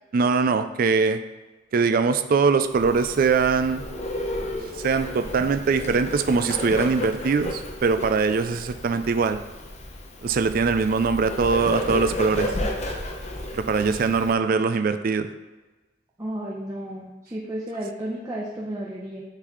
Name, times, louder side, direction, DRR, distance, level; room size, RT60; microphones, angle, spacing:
voice 1, 0.1-1.2 1.7-3.8 4.6-9.4 10.2-12.5 13.5-15.3, right 4 dB, 45° right, 9 dB, 0.3 m, -22 dB
Bird, 2.7-14.3, left 1 dB, 35° left, 0.8 m, -33 dB
voice 2, 16.2-19.2, right 1 dB, 15° right, -5 dB, 0.7 m, -33 dB
9.8 x 4.0 x 3.1 m, 1.2 s
head